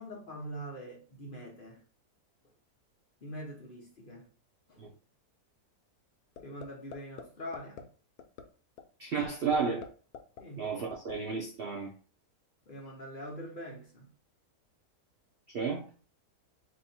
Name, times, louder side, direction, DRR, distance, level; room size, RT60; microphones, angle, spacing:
voice 1, 0.0-1.8 3.2-4.3 4.7-4.9 6.4-7.9 10.4-10.7 12.7-14.1, equal, 45° left, 0.8 m, -43 dB
sound 1, 6.4-6.7 6.9-7.2 7.5-7.8 8.2-8.4 8.8-8.9 9.2-9.9 10.1-11.1, left 7 dB, 80° left, 1.0 m, -43 dB
voice 2, 9.0-9.9 10.6-11.9 15.5-15.9, right 5 dB, 65° right, 0.5 m, -32 dB
2.7 x 2.7 x 4.2 m
omnidirectional pair, 1.6 m